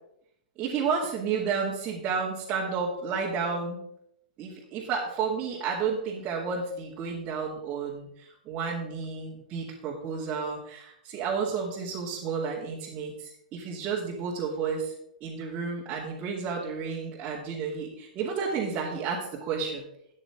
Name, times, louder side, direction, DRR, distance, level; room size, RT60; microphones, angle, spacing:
voice 1, 0.6-3.8 4.4-14.9 15.2-19.8, right 5 dB, 30° right, -6 dB, 2.5 m, -31 dB
13.0 x 9.8 x 3.7 m, 0.75 s
figure-of-eight pair, 105°, 4 cm